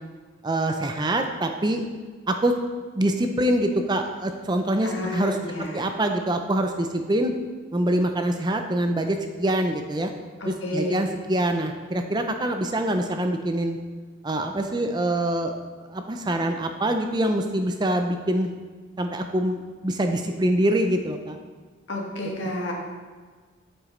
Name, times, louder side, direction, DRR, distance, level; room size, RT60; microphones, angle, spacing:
voice 1, 0.4-1.9 2.3-2.5 3.0-7.3 7.7-10.1 10.5-13.8 14.2-15.5 15.9-18.5 19.0-21.4, right 1 dB, 20° right, 5 dB, 0.4 m, -25 dB
voice 2, 4.8-5.9 10.4-11.0 21.9-22.7, left 1 dB, 65° left, -1 dB, 1.5 m, -31 dB
8.7 x 7.9 x 3.2 m, 1.5 s
head